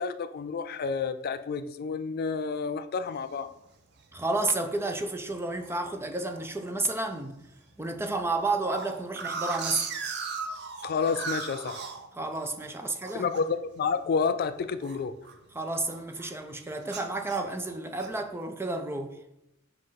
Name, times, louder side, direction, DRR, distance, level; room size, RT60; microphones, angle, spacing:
voice 1, 0.0-3.5 10.8-11.8 13.1-15.1, left 5 dB, 50° left, 0.4 m, -30 dB
sound 1, 3.1-3.5 4.0-4.1 4.3-4.7 5.0-5.8 6.3-6.7 7.1-7.2 7.4-7.5 7.9-12.7 13.0-15.5 15.8-16.4 16.8-18.2, right 5 dB, 60° right, 0.8 m, -38 dB
voice 2, 4.1-7.4 7.8-9.9 12.2-13.3 15.5-19.2, right 2 dB, 10° right, 0.5 m, -31 dB
7.5 x 2.6 x 5.6 m
head